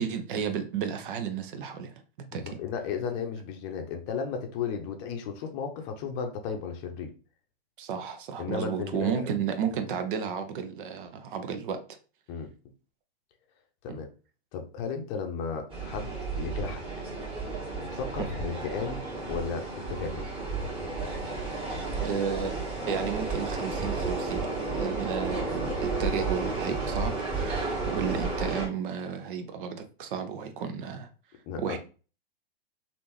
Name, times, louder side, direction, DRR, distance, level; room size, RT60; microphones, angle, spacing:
voice 1, 0.0-2.0 2.3-2.6 7.8-11.8 13.9-14.0 18.2-18.3 22.0-22.5 22.9-31.1 31.6-31.8, right 7 dB, 55° right, 8 dB, 0.7 m, -33 dB
voice 2, 2.4-7.1 8.4-9.1 12.3-12.5 13.8-14.1 14.5-16.8 17.5-19.0 19.3-20.3 27.6-27.8 31.5-31.8, left 6 dB, 35° left, 5 dB, 0.6 m, -34 dB
sound 1, 15.7-28.7, right 3 dB, 15° right, 1.6 m, -32 dB
3.4 x 2.6 x 2.9 m, 0.35 s
hypercardioid pair, 110°, 31 cm